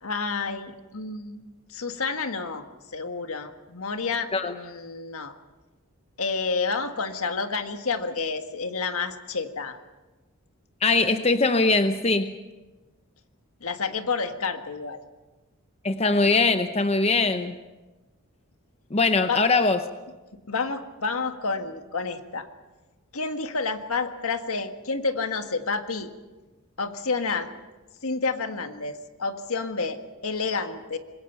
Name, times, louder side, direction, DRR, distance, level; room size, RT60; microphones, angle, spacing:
voice 1, 0.0-1.4 1.7-2.6 2.9-5.3 6.2-9.8 13.6-15.0 19.3-19.4 20.5-22.5 23.1-26.1 26.8-27.5 28.0-30.0 30.2-31.0, left 4 dB, 75° left, 7 dB, 1.6 m, -29 dB
voice 2, 10.8-12.3 15.8-17.6 18.9-19.8, left 3 dB, 25° left, 9 dB, 0.7 m, -21 dB
25.5 x 21.5 x 5.8 m, 1.2 s
head